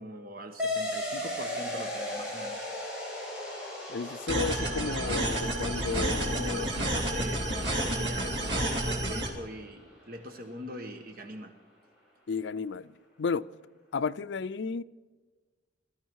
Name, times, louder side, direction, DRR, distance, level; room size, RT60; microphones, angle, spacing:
voice 1, 0.0-2.7 6.1-11.5, equal, 55° right, 1.2 m, -42 dB
sound 1, 0.6-9.6, left 1 dB, 5° right, 6.0 m, -38 dB
voice 2, 3.9-6.7 12.3-12.9 13.2-13.4 13.9-14.8, left 5 dB, 75° left, 0.4 m, -32 dB
sound 2, 4.3-9.3, right 1 dB, 70° right, 2.9 m, -30 dB
22.0 x 13.5 x 4.7 m
head